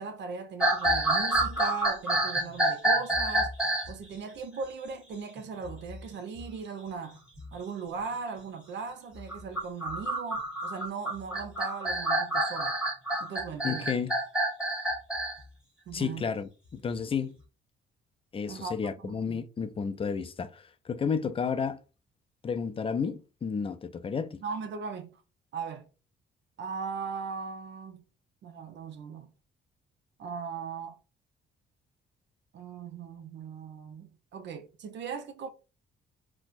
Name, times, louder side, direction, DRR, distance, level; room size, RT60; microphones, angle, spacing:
voice 1, 0.0-3.5 3.9-7.2 7.5-12.8 13.2-13.9 15.9-16.3 18.5-19.4 24.4-25.1 25.5-25.9 26.6-28.0 28.4-29.3 30.2-31.0 32.5-35.5, right 5 dB, 65° right, 0.7 m, -38 dB
sound 1, 0.6-3.9 5.4-6.0 6.4-6.5 7.2-7.5 9.2-15.4, right 1 dB, 5° right, 1.2 m, -28 dB
voice 2, 13.6-14.1 15.9-17.3 18.3-21.8 22.4-24.4, left 6 dB, 30° left, 0.4 m, -32 dB
4.1 x 2.1 x 2.5 m
cardioid pair, 90°, 20 cm